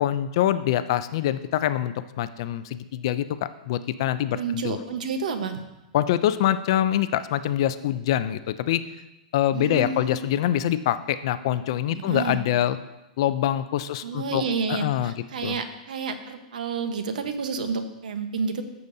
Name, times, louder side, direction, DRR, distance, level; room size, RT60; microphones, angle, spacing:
voice 1, 0.0-4.8 5.9-8.8 9.3-12.8 13.2-14.4 14.7-15.1 15.4-15.6, left 12 dB, 35° left, 13 dB, 0.3 m, -25 dB
voice 2, 4.3-5.6 9.5-10.1 11.9-12.4 14.0-18.6, right 5 dB, 75° right, 8 dB, 1.0 m, -30 dB
14.0 x 6.8 x 2.7 m, 0.95 s
supercardioid pair, 180°, 4 cm